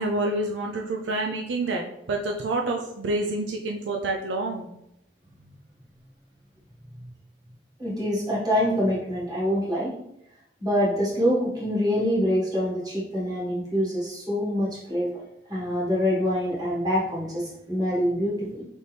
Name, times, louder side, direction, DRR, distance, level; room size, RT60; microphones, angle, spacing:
voice 1, 0.0-4.7, right 2 dB, 70° right, 1 dB, 0.4 m, -28 dB
voice 2, 7.8-9.9 10.6-15.2 15.5-18.6, equal, 20° right, -7 dB, 1.6 m, -25 dB
4.1 x 3.5 x 3.3 m, 0.80 s
head